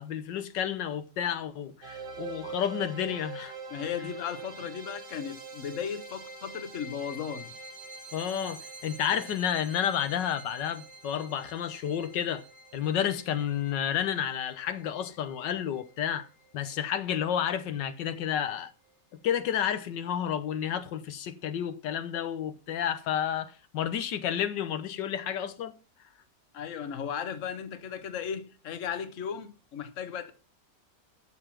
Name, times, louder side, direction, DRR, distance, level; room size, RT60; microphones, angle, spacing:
voice 1, 0.0-3.5 8.1-12.4 12.7-16.3 16.5-18.7 19.2-25.7, left 9 dB, 85° left, 1.5 m, -31 dB
sound 1, 1.8-16.8, right 4 dB, 80° right, 2.6 m, -45 dB
voice 2, 3.7-7.5 26.5-30.3, left 8 dB, 50° left, 1.4 m, -36 dB
12.5 x 6.8 x 5.8 m
omnidirectional pair, 1.9 m